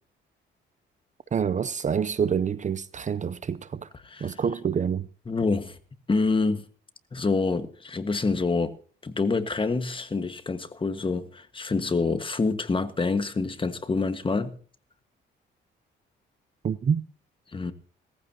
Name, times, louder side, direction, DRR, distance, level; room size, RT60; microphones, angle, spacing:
voice 1, 1.3-3.9 4.2-5.1 16.6-17.0, right 7 dB, 40° right, 0.6 m, -27 dB
voice 2, 5.3-5.8 6.1-6.6 7.1-8.8 9.0-14.6 17.5-17.7, left 3 dB, 25° left, 1.5 m, -27 dB
18.0 x 15.0 x 2.9 m
cardioid pair, 90°, 20 cm